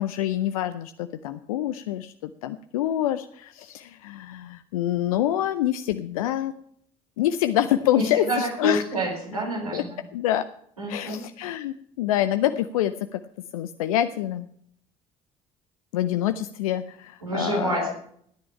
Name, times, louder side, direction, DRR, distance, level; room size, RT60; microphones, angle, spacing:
voice 1, 0.0-6.5 7.2-8.8 9.7-9.8 10.1-10.4 10.9-13.2 13.5-14.5 15.9-17.9, left 12 dB, 75° left, 10 dB, 0.5 m, -26 dB
voice 2, 7.9-10.0 10.8-11.2 17.2-17.9, right 2 dB, 90° right, -3 dB, 4.2 m, -28 dB
14.0 x 10.0 x 5.7 m, 0.67 s
figure-of-eight pair, 50°, 18 cm